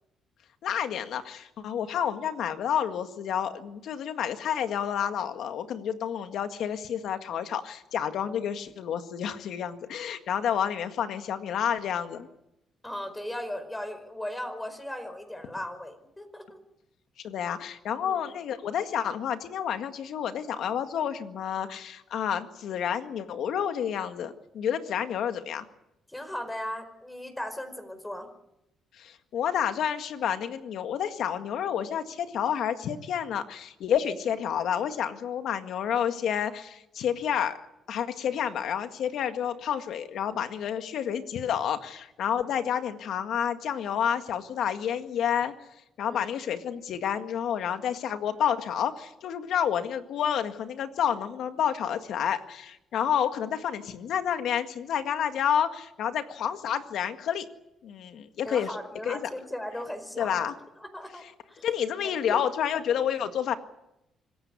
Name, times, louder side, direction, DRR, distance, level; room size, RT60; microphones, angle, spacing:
voice 1, 0.6-12.3 17.2-25.7 29.0-37.6 37.9-45.5 46.0-57.5 57.8-58.8 59.1-59.3 60.2-60.5 61.6-63.6, left 9 dB, 75° left, 8 dB, 1.9 m, -29 dB
voice 2, 12.8-16.6 18.0-18.2 26.1-28.3 46.0-46.3 58.4-61.7 62.0-62.4, left 1 dB, 10° left, 9 dB, 4.9 m, -37 dB
26.0 x 15.5 x 9.7 m, 0.87 s
cardioid pair, 90°, 0 cm